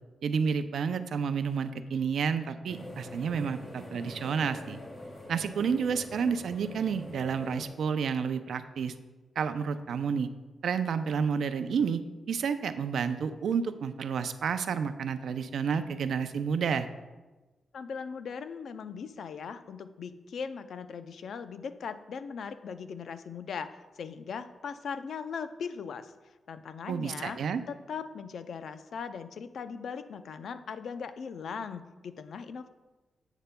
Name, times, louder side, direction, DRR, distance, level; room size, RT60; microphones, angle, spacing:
voice 1, 0.2-4.8 5.3-8.9 9.4-10.3 10.6-12.0 12.3-16.9 26.9-27.6, right 6 dB, 80° right, 10 dB, 0.5 m, -30 dB
sound 1, 2.7-7.7, left 1 dB, 40° left, 2.7 m, -44 dB
voice 2, 17.7-26.1 26.5-27.4 27.7-32.7, left 6 dB, 70° left, 11 dB, 0.4 m, -39 dB
10.0 x 8.2 x 2.2 m, 1.2 s
cardioid pair, 100°, 0 cm